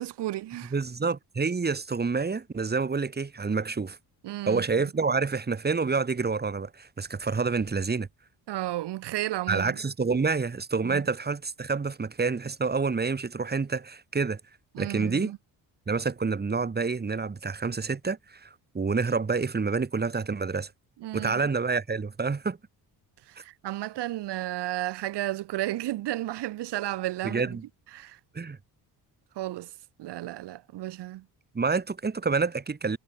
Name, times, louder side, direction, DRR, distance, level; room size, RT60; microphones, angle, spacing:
voice 1, 0.0-0.7 4.2-4.6 8.5-9.8 10.8-11.0 14.7-15.4 21.0-21.3 23.3-27.6 27.9-28.2 29.4-29.7 30.0-31.2, right 15 dB, 85° right, 2.1 m, -33 dB
voice 2, 0.7-4.0 4.5-8.1 9.5-14.4 14.8-15.3 15.9-18.5 18.7-20.7 21.1-22.6 27.2-27.6 28.3-28.6 31.5-33.0, right 4 dB, 25° right, 2.1 m, -28 dB
cardioid pair, 105°, 40 cm